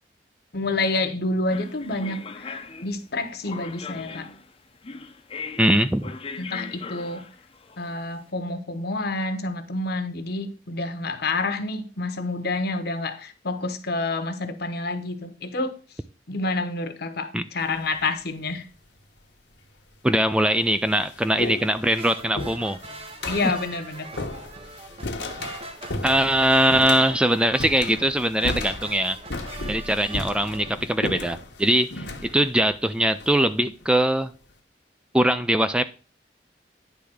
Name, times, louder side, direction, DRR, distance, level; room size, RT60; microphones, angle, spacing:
voice 1, 0.5-4.3 6.4-7.3 7.8-15.8 16.3-18.7 23.3-24.1, left 2 dB, 65° left, 1.0 m, -28 dB
sound 1, 1.5-8.2, left 5 dB, 35° left, 0.7 m, -39 dB
voice 2, 5.6-6.1 17.3-17.4 20.0-22.8 23.4-23.5 26.0-29.2 29.7-34.3 35.1-35.8, right 1 dB, 5° right, 0.3 m, -21 dB
sound 2, 17.6-18.0 19.0-19.1 19.9-20.0 20.4-33.9, left 2 dB, 80° left, 1.2 m, -35 dB
sound 3, 22.0-30.7, right 3 dB, 35° right, 0.7 m, -42 dB
10.0 x 3.5 x 6.2 m
head